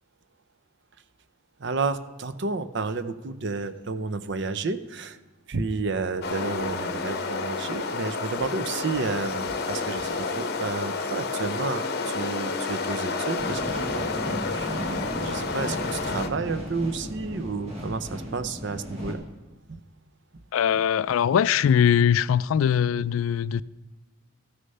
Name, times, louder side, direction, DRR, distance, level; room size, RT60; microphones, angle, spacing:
voice 1, 1.6-5.2 5.5-19.2 19.7-19.8, right 4 dB, 55° right, 0.6 m, -31 dB
sound 1, 6.2-16.3, left 4 dB, 50° left, 0.9 m, -30 dB
sound 2, 13.4-19.1, equal, 30° right, 1.9 m, -35 dB
voice 2, 20.5-23.6, left 8 dB, 75° left, 0.3 m, -21 dB
13.5 x 6.5 x 5.4 m
head